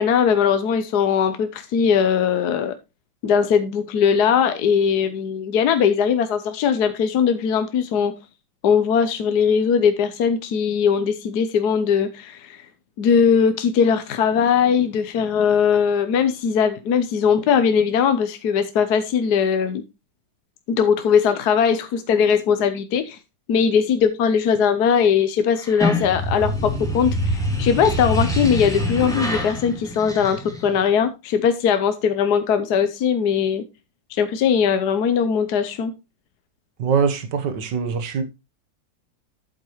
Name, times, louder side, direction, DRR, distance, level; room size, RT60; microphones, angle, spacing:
voice 1, 0.0-2.7 3.2-8.1 8.6-12.7 13.0-19.8 20.7-23.2 23.5-33.6 34.1-35.9, left 7 dB, 65° left, 1.3 m, -20 dB
sound 1, 25.6-30.9, left 1 dB, ahead, 2.4 m, -25 dB
voice 2, 36.8-38.2, right 6 dB, 65° right, 1.8 m, -22 dB
8.6 x 8.1 x 3.1 m
omnidirectional pair, 2.1 m